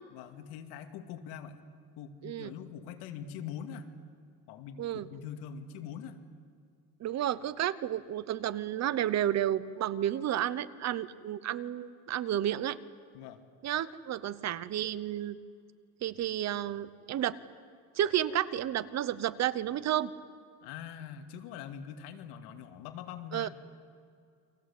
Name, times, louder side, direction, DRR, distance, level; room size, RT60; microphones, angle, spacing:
voice 1, 0.1-1.6 2.0-3.9 4.5-6.2 13.1-13.4 20.6-23.5, left 8 dB, 90° left, 7 dB, 2.4 m, -43 dB
voice 2, 4.8-5.1 7.0-12.8 13.6-15.4 16.0-17.4 18.0-20.1 23.3-23.5, right 11 dB, 45° right, 16 dB, 1.0 m, -31 dB
29.5 x 23.5 x 8.5 m, 2.2 s
cardioid pair, 150°, 38 cm